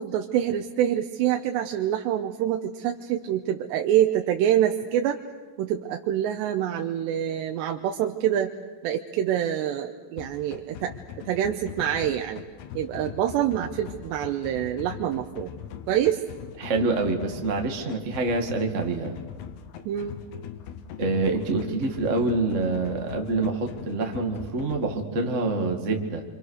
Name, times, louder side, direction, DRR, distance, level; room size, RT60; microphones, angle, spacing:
voice 1, 0.0-5.2 5.6-8.5 8.8-10.9 11.3-12.4 12.7-15.5 15.9-16.2 19.9-20.2, right 11 dB, 85° right, 4 dB, 3.1 m, -26 dB
sound 1, 10.2-24.9, left 9 dB, 75° left, 3.2 m, -41 dB
voice 2, 16.6-19.2 21.0-26.2, right 3 dB, 35° right, 3 dB, 1.3 m, -26 dB
27.5 x 25.5 x 6.6 m, 1.4 s
omnidirectional pair, 4.9 m